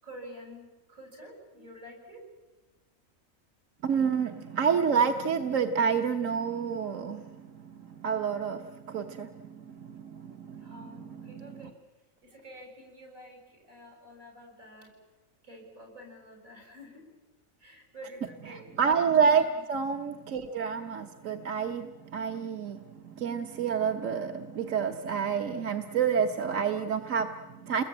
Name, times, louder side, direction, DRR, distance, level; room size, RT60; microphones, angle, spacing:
voice 1, 0.0-2.2 10.6-11.8 12.2-14.9 15.4-17.1 17.6-18.7 19.5-19.6, equal, 90° right, 2 dB, 8.0 m, -48 dB
voice 2, 3.8-10.7 11.4-11.5 18.8-27.8, right 6 dB, 70° right, 5 dB, 1.5 m, -29 dB
29.0 x 21.0 x 8.9 m, 1.1 s
omnidirectional pair, 1.4 m